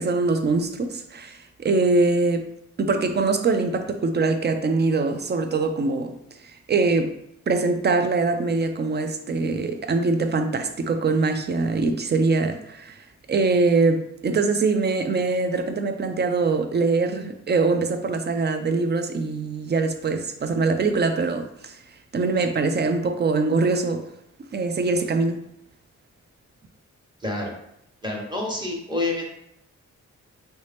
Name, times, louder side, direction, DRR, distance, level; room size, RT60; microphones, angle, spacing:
voice 1, 0.0-2.5 2.8-6.2 6.7-7.2 7.5-13.0 13.3-21.7 22.1-24.0 24.5-25.4, right 3 dB, 35° right, 0.4 m, -23 dB
voice 2, 27.2-27.5 28.0-29.3, left 2 dB, 15° right, 1.0 m, -28 dB
3.2 x 2.7 x 3.3 m
cardioid pair, 85°, 30 cm